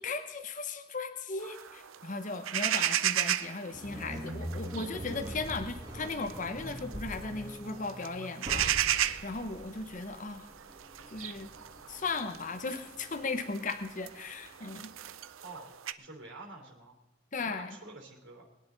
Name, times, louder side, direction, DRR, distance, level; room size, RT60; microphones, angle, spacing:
voice 1, 0.0-10.5 11.1-11.5 11.9-14.9 17.3-17.7, left 3 dB, 40° left, 8 dB, 0.9 m, -37 dB
sound 1, 1.4-15.9, right 11 dB, 80° right, 0.6 m, -36 dB
sound 2, 3.7-14.9, equal, 20° right, 2.0 m, -43 dB
voice 2, 16.0-16.9 17.4-18.5, right 2 dB, 65° right, 0 dB, 3.4 m, -48 dB
21.5 x 10.5 x 4.0 m, 0.97 s
head